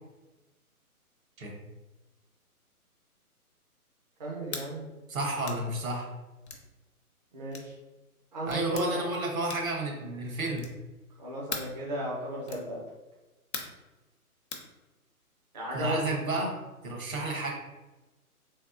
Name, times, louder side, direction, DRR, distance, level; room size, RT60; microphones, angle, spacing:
voice 1, 4.2-4.9 7.3-7.7 8.3-9.0 11.2-12.8 15.5-16.0, right 1 dB, 30° right, -4 dB, 0.5 m, -35 dB
sound 1, 4.5-4.7 5.4-5.7 6.5-6.7 7.5-7.7 8.5-8.9 9.5-9.8 10.5-10.9 11.5-11.8 12.5-12.7 13.5-13.8 14.5-14.7, left 5 dB, 50° left, 0.6 m, -39 dB
voice 2, 5.1-6.1 8.5-10.7 15.7-16.5 16.8-17.5, right 2 dB, 65° right, 1 dB, 1.2 m, -31 dB
3.5 x 3.4 x 2.5 m, 1.1 s
figure-of-eight pair, 145°, 45 cm